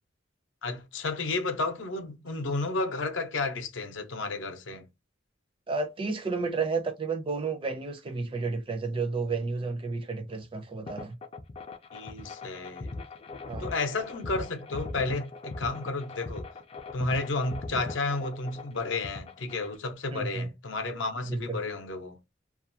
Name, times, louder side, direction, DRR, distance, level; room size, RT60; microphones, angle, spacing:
voice 1, 0.6-4.8 11.9-12.9 13.6-16.5 16.9-22.2, left 3 dB, 80° left, 0.6 m, -32 dB
voice 2, 5.7-11.2 13.5-13.7 20.1-20.5 21.3-21.6, right 4 dB, 30° right, 0.5 m, -31 dB
sound 1, 10.9-19.8, left 3 dB, 30° left, 0.3 m, -40 dB
2.3 x 2.2 x 2.7 m
head